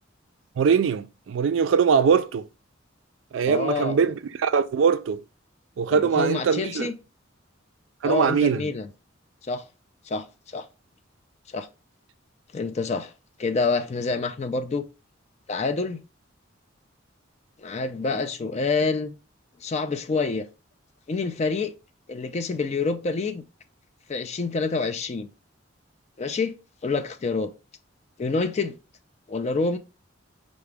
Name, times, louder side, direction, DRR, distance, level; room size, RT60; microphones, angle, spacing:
voice 1, 0.6-2.5 3.3-5.2 5.8-6.9 8.0-8.7, right 6 dB, 70° right, 0.3 m, -22 dB
voice 2, 3.5-4.0 5.9-7.0 8.0-8.9 9.4-9.6 10.1-10.3 10.5-10.7 11.5-11.7 12.5-13.1 13.4-14.9 15.5-16.0 17.6-19.1 19.6-20.4 21.1-21.7 22.1-23.4 24.1-25.3 26.2-26.5 26.8-27.5 28.2-28.8 29.3-29.8, left 4 dB, 35° left, 0.3 m, -27 dB
5.7 x 2.1 x 3.3 m
head